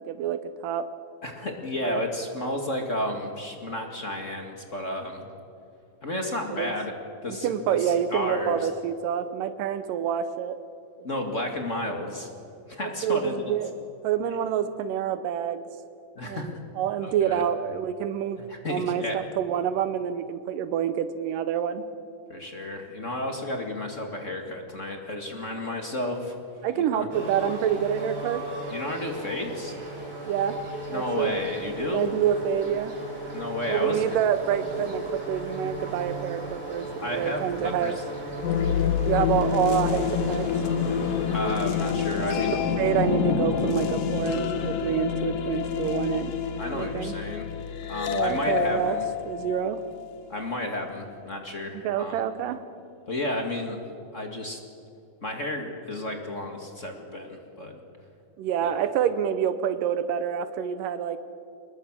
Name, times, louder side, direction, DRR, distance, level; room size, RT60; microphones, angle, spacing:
voice 1, 0.1-0.9 1.8-2.0 6.5-6.7 7.4-10.6 12.8-13.7 14.0-15.6 16.2-18.4 18.7-21.8 26.6-28.4 30.3-30.6 30.9-31.3 31.9-32.9 33.7-38.0 39.0-40.5 42.2-46.3 46.7-47.2 48.1-49.0 49.3-49.8 51.8-52.6 58.4-61.2, right 9 dB, 85° right, 11 dB, 2.5 m, -27 dB
voice 2, 1.2-5.3 6.0-6.9 7.2-8.7 11.0-12.3 12.7-13.4 16.2-16.5 17.0-17.5 18.4-19.2 22.3-26.4 26.7-27.1 28.7-29.8 30.9-32.1 33.3-34.0 37.0-37.9 39.1-39.4 41.3-42.5 46.6-47.4 47.9-49.1 50.3-52.2 53.1-53.8 54.1-54.6 55.2-57.8 58.6-58.7, left 1 dB, 30° left, 3 dB, 1.7 m, -32 dB
sound 1, 27.1-41.5, right 1 dB, 25° right, 5.6 m, -36 dB
sound 2, 38.4-50.2, left 7 dB, 85° left, 3.1 m, -27 dB
25.5 x 20.5 x 7.5 m, 2.5 s
omnidirectional pair, 3.8 m